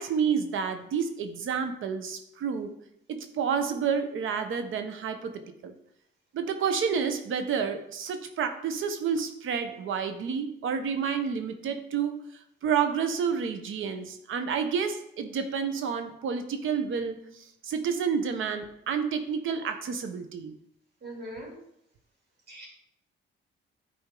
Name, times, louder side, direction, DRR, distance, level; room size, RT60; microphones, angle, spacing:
voice 1, 0.0-2.7 3.1-5.7 6.3-12.2 12.6-20.5, right 6 dB, 75° right, 8 dB, 1.0 m, -30 dB
voice 2, 21.0-21.5 22.5-22.7, right 1 dB, 55° right, -2 dB, 3.2 m, -40 dB
10.5 x 4.3 x 3.8 m, 0.76 s
cardioid pair, 95°, 21 cm